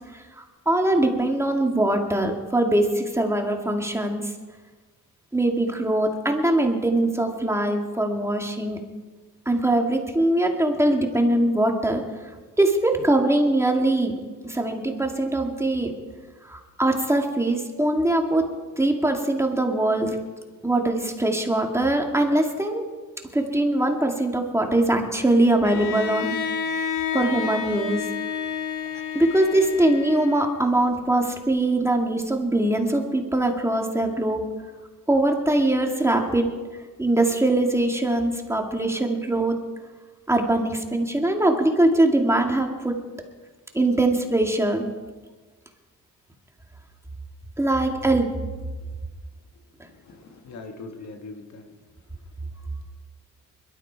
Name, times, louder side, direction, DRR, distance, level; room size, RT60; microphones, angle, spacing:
voice 1, 0.4-4.2 5.3-8.8 9.5-12.0 12.6-14.1 14.4-15.9 16.5-18.5 18.8-20.2 20.6-22.8 23.3-26.4 27.1-28.0 29.1-34.4 35.1-36.5 37.0-39.6 40.3-42.9 43.7-44.9 47.6-48.3, right 1 dB, 10° right, 3 dB, 2.1 m, -22 dB
Bowed string instrument, 25.6-30.7, left 6 dB, 85° left, 1.5 m, -30 dB
voice 2, 50.0-51.7, left 3 dB, 65° left, 5 dB, 1.9 m, -41 dB
21.5 x 12.5 x 4.7 m, 1.4 s
cardioid pair, 90°, 30 cm